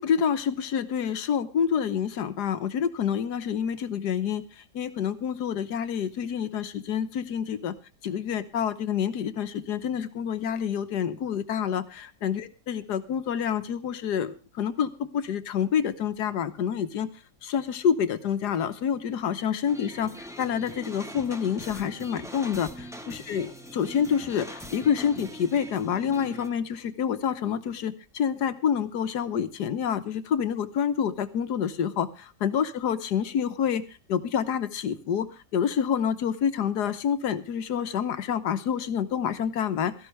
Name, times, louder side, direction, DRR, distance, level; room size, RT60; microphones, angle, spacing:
voice 1, 0.0-4.4 4.7-7.7 8.0-17.1 17.4-33.8 34.1-39.9, left 8 dB, 65° left, 11 dB, 1.6 m, -28 dB
sound 1, 19.7-26.5, equal, ahead, 1.2 m, -42 dB
17.0 x 14.0 x 3.3 m, 0.32 s
omnidirectional pair, 1.9 m